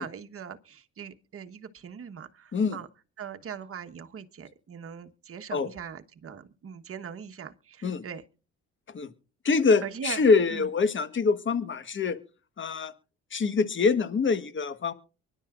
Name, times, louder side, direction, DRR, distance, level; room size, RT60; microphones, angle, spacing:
voice 1, 0.0-2.9 3.2-8.2 9.8-10.2 10.5-10.7, right 7 dB, 50° right, 1.3 m, -41 dB
voice 2, 9.4-12.2 12.6-12.9 13.3-14.9, left 4 dB, 40° left, 1.4 m, -25 dB
24.0 x 11.0 x 2.5 m
cardioid pair, 90°, 30 cm